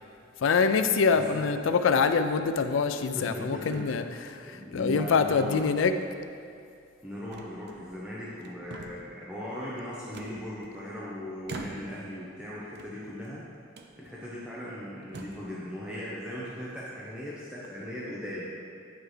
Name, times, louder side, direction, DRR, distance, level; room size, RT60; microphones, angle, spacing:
voice 1, 0.4-6.0, left 5 dB, 85° left, 9 dB, 0.4 m, -25 dB
sound 1, 1.0-1.4 2.2-2.9 3.7-3.9 4.3-4.4 4.9-5.3 5.6-6.3 7.3-8.0 8.4-9.2 10.1-11.0 11.4-12.1 12.7-13.3 13.7-13.9 14.6-14.7 15.0-15.5, right 3 dB, 60° right, 0.5 m, -45 dB
voice 2, 1.1-1.4 3.1-3.9 4.5-5.6 7.0-13.4 14.0-18.5, left 1 dB, 5° right, -8 dB, 0.7 m, -38 dB
9.9 x 4.6 x 3.3 m, 2.4 s
head